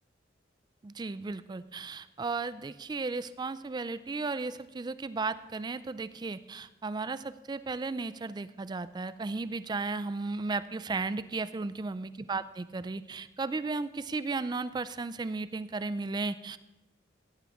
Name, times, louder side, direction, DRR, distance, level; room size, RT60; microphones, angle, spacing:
voice 1, 0.8-16.6, right 3 dB, 25° right, 15 dB, 0.3 m, -35 dB
16.5 x 9.6 x 3.5 m, 1.1 s
head